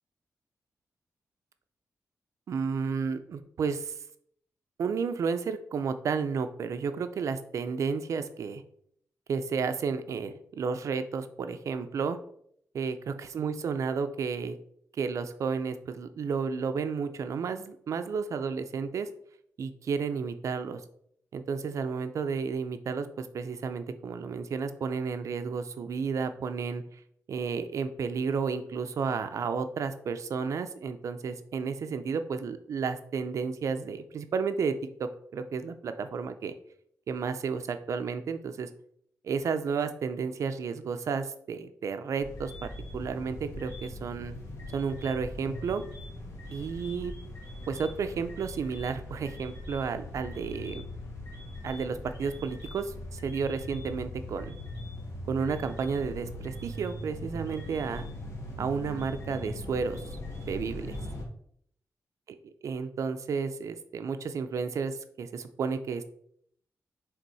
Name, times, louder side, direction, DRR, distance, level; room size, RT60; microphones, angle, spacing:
voice 1, 2.5-3.9 4.8-8.6 9.3-12.2 12.7-14.6 15.0-19.1 19.6-20.8 21.3-27.0 27.3-36.5 37.1-38.7 39.2-44.3 44.7-45.8 46.5-47.1 47.7-50.9 51.6-54.5 55.3-58.1 58.6-60.0 60.4-61.0 62.6-66.0, right 5 dB, 60° right, 9 dB, 0.6 m, -32 dB
sound 1, 42.2-61.2, left 1 dB, 60° left, 1.6 m, -41 dB
6.8 x 3.6 x 4.8 m, 0.67 s
wide cardioid pair, 175°, 6 cm